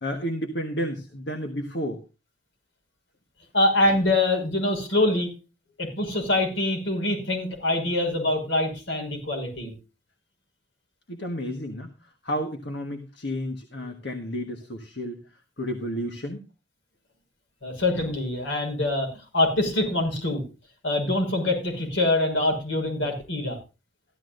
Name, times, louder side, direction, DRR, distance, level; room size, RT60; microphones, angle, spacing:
voice 1, 0.0-2.0 11.1-11.9 12.2-15.2 15.6-16.4, equal, 60° left, 5 dB, 1.4 m, -31 dB
voice 2, 3.5-5.3 5.8-9.7 17.6-20.4 20.8-23.6, left 2 dB, 75° left, 2 dB, 5.7 m, -24 dB
15.0 x 12.5 x 2.6 m, 0.31 s
head